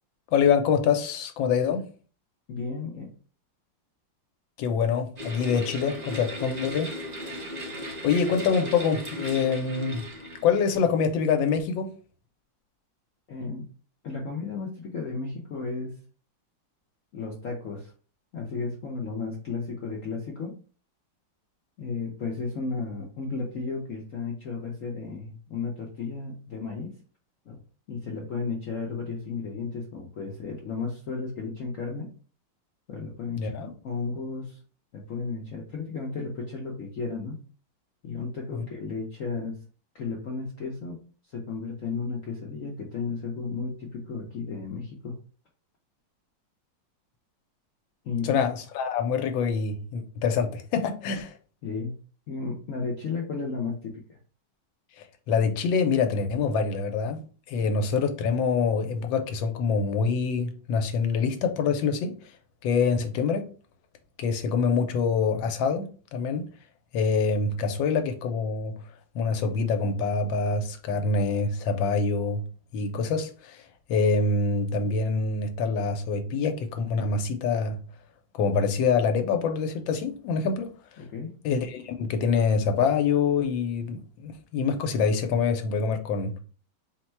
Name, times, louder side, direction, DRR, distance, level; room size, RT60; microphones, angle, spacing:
voice 1, 0.3-1.9 4.6-6.9 8.0-10.1 10.4-11.9 33.4-33.7 38.5-38.6 48.2-51.3 55.0-57.2 57.5-62.1 62.6-63.5 64.2-66.5 66.9-68.8 69.1-72.4 72.7-77.8 78.3-80.7 81.4-86.4, left 5 dB, 85° left, 1.4 m, -25 dB
voice 2, 2.5-3.1 13.3-13.7 14.0-16.0 17.1-17.9 18.3-20.6 21.8-26.9 27.5-27.6 27.9-32.1 32.9-34.6 34.9-37.4 38.0-39.6 39.9-41.0 41.3-45.2 48.0-48.4 51.6-51.9 52.3-54.2 81.0-81.4, left 4 dB, 60° left, 0.9 m, -34 dB
sound 1, 5.2-10.8, equal, 45° right, 0.5 m, -37 dB
4.3 x 2.2 x 4.3 m
omnidirectional pair, 2.0 m